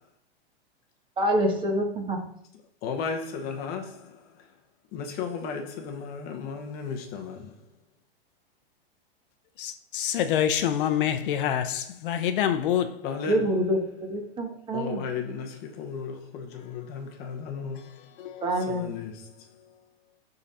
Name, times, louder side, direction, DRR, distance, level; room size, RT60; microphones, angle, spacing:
voice 1, 1.2-2.2 13.3-15.0 18.4-18.8, equal, 15° right, 1.4 m, -26 dB
voice 2, 2.8-4.2 4.9-7.5 13.0-13.5 14.7-17.8 18.7-19.5, left 5 dB, 30° left, 0.9 m, -34 dB
voice 3, 9.6-13.0 16.5-16.7 17.7-18.7, left 10 dB, 60° left, 0.8 m, -27 dB
11.5 x 4.0 x 4.3 m
hypercardioid pair, 145°, 30 cm